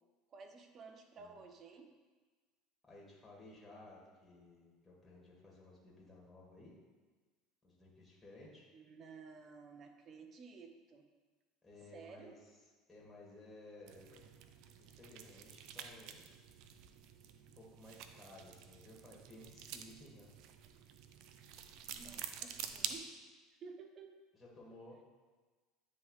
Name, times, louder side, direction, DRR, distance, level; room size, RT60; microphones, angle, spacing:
voice 1, 0.3-1.9 8.7-11.0 11.9-12.4 21.9-23.1 23.6-24.1, right 5 dB, 40° right, 5 dB, 0.7 m, -54 dB
voice 2, 1.2-1.5 2.8-6.8 7.6-8.7 11.6-12.4 12.9-14.1 14.9-16.2 17.6-20.3 24.3-25.0, left 2 dB, 15° left, -4 dB, 1.8 m, -57 dB
sound 1, 13.9-23.0, right 9 dB, 65° right, 0.4 m, -48 dB
9.3 x 3.2 x 3.2 m, 1.4 s
supercardioid pair, 100°, 0 cm